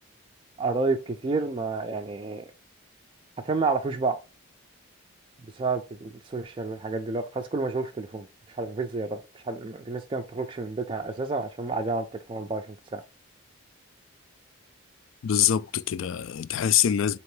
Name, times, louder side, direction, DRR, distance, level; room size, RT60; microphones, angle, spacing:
voice 1, 0.6-2.5 3.4-4.2 5.5-13.0, right 3 dB, 25° right, 0.3 m, -30 dB
voice 2, 15.2-17.2, left 10 dB, 60° left, 0.3 m, -24 dB
4.4 x 2.9 x 3.1 m
head